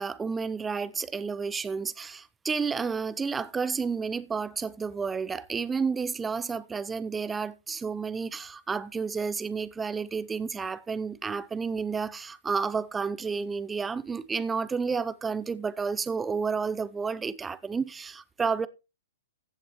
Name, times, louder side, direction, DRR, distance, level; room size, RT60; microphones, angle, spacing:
voice 1, 0.0-18.7, right 5 dB, 15° right, 0.7 m, -31 dB
15.0 x 7.5 x 3.1 m
figure-of-eight pair, 115°, 0 cm